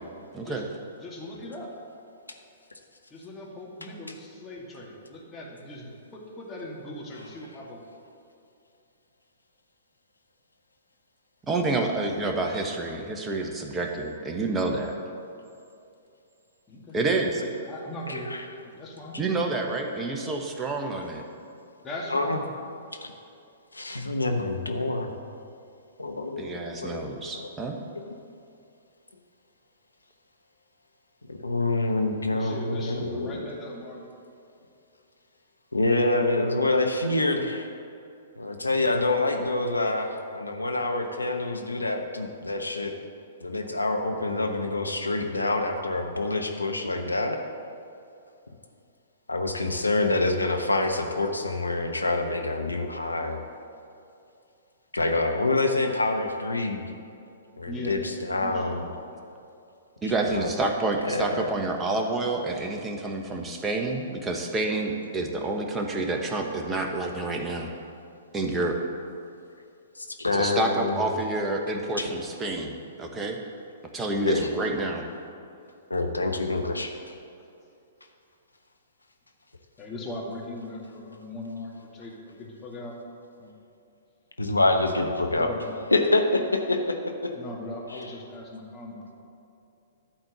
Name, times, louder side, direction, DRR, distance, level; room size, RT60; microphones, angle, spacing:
voice 1, 0.3-0.6 11.5-14.9 16.9-17.4 19.2-21.2 26.4-27.8 60.0-67.7 68.3-68.8 70.3-73.4 73.9-75.0, right 2 dB, 15° right, 2 dB, 1.2 m, -28 dB
voice 2, 1.0-1.7 3.1-7.8 16.7-18.3 18.6-19.2 20.9-21.0 21.3-21.5 21.8-22.4 32.3-34.1 57.7-58.0 58.3-59.0 79.8-82.9 83.4-83.5 85.3-85.7 87.3-89.2, left 1 dB, 20° left, -3 dB, 2.3 m, -39 dB
voice 3, 18.1-18.4 22.1-22.4 23.0-23.1 23.7-25.1 26.0-27.5 31.3-33.5 35.7-37.7 38.4-42.9 43.4-47.4 49.3-53.4 54.9-56.9 57.6-58.8 60.0-60.5 61.0-61.4 69.9-71.1 72.0-72.1 74.2-74.4 75.9-77.0 84.4-85.5 85.9-87.3 87.9-88.0, left 2 dB, 90° left, 4 dB, 1.0 m, -26 dB
11.5 x 4.4 x 8.0 m, 2.6 s
figure-of-eight pair, 115°, 0 cm